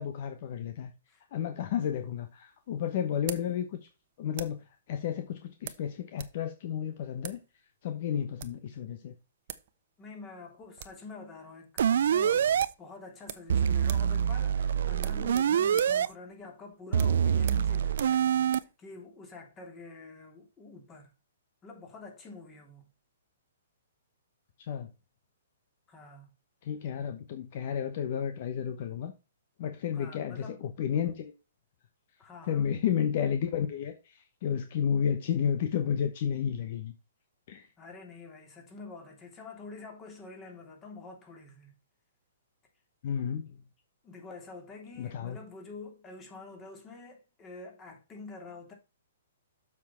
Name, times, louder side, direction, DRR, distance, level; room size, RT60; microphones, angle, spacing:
voice 1, 0.0-0.9 1.3-3.9 4.2-7.4 7.8-9.2 24.6-24.9 26.6-29.1 29.6-31.3 32.5-36.9 37.5-37.7 43.0-43.6 45.0-45.4, left 8 dB, 50° left, 1.0 m, -32 dB
sound 1, 1.8-4.7 5.6-6.4 6.6-6.7 7.2-7.4 8.2-8.7 9.2-9.3 9.5-9.7 10.0-10.1 10.4-11.0 11.4-11.5 11.8-12.0 12.6-13.6 13.8-14.2 14.4-14.5 14.9-18.8, right 12 dB, 50° right, 0.9 m, -44 dB
voice 2, 10.0-21.1 21.6-22.9 25.9-26.3 29.9-30.6 32.2-32.7 37.8-41.8 44.0-48.7, left 3 dB, 20° left, 2.9 m, -47 dB
sound 2, 11.8-12.7 13.5-16.1 16.9-18.6, right 8 dB, 70° right, 0.4 m, -25 dB
7.3 x 6.1 x 4.4 m
hypercardioid pair, 140°, 0 cm